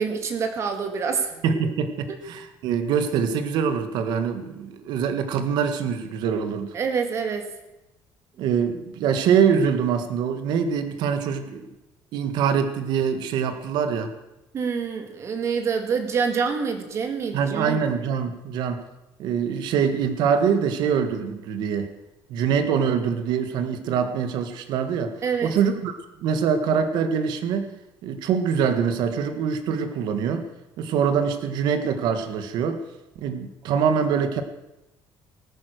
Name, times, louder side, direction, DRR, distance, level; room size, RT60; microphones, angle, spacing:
voice 1, 0.0-1.4 2.1-2.2 6.7-7.5 14.5-17.8 25.2-25.5, right 6 dB, 35° right, 6 dB, 2.1 m, -26 dB
voice 2, 1.4-6.7 8.4-11.7 12.1-14.1 17.3-18.8 19.2-21.9 22.3-25.2 25.4-27.7 28.0-30.5 30.8-32.8 33.2-34.4, right 7 dB, 65° right, 9 dB, 1.6 m, -24 dB
19.5 x 9.7 x 6.5 m, 0.95 s
cardioid pair, 170°, 8 cm